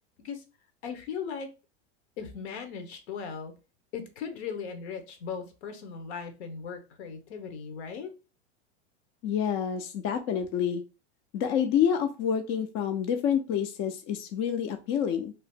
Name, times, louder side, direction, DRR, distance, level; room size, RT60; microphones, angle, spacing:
voice 1, 0.8-1.5 2.2-3.5 3.9-8.1, left 6 dB, 70° left, 0.9 m, -38 dB
voice 2, 9.2-10.8 11.3-15.3, left 8 dB, 35° left, 0.4 m, -28 dB
2.8 x 2.0 x 3.4 m
hypercardioid pair, 120°, 34 cm